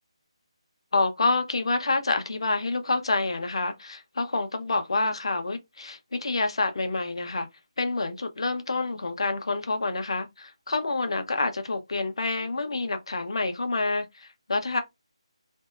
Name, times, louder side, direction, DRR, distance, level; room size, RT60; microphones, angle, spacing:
voice 1, 0.9-7.5 7.8-14.8, left 3 dB, 55° left, 0.7 m, -28 dB
3.1 x 2.7 x 2.3 m
hypercardioid pair, 175°, 3 cm